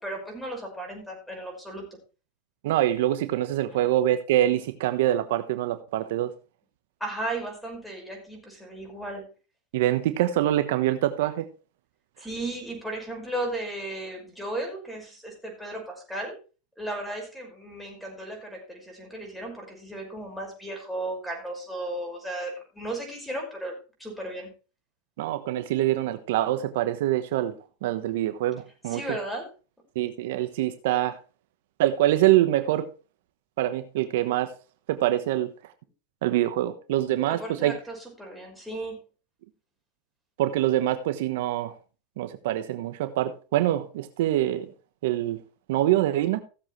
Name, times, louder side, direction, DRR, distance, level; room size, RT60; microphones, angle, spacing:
voice 1, 0.0-1.8 7.0-9.3 12.2-16.4 16.8-23.7 24.0-24.5 28.8-29.5 37.3-39.0, right 1 dB, 5° left, 2 dB, 5.5 m, -35 dB
voice 2, 2.6-6.3 9.7-11.5 25.2-27.5 27.8-29.2 29.9-31.2 31.8-32.9 33.6-34.5 34.9-35.5 36.2-37.8 40.4-41.7 42.2-44.7 45.0-45.4 45.7-46.4, right 13 dB, 75° right, 10 dB, 1.1 m, -25 dB
16.5 x 7.4 x 3.2 m, 0.33 s
hypercardioid pair, 110°, 0 cm